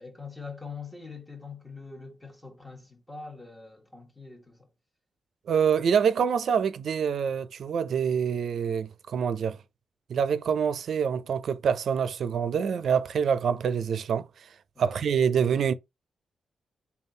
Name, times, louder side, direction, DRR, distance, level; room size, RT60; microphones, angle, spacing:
voice 1, 0.0-4.7 14.8-15.0, left 4 dB, 15° left, 1.2 m, -43 dB
voice 2, 5.5-9.6 10.1-14.3 14.8-15.7, right 7 dB, 70° right, 0.4 m, -26 dB
3.5 x 2.3 x 3.8 m
cardioid pair, 85°, 0 cm